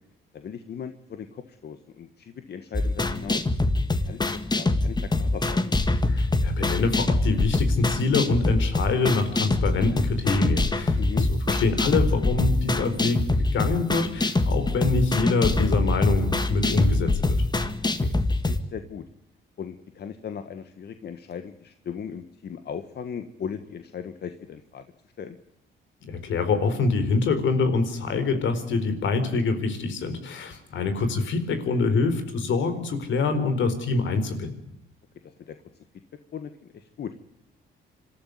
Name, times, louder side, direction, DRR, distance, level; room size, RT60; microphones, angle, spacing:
voice 1, 0.3-3.5 4.0-5.7 11.0-11.3 18.0-19.1 19.6-24.8 25.2-25.4 30.8-30.9 35.2-35.8 36.3-37.1, left 7 dB, 55° left, 9 dB, 1.6 m, -38 dB
sound 1, 2.7-18.6, left 2 dB, 20° left, 1.9 m, -24 dB
voice 2, 6.1-11.0 11.5-17.4 26.0-34.5, left 3 dB, 75° left, 9 dB, 4.3 m, -25 dB
26.0 x 14.0 x 9.5 m, 0.84 s
cardioid pair, 90°, 20 cm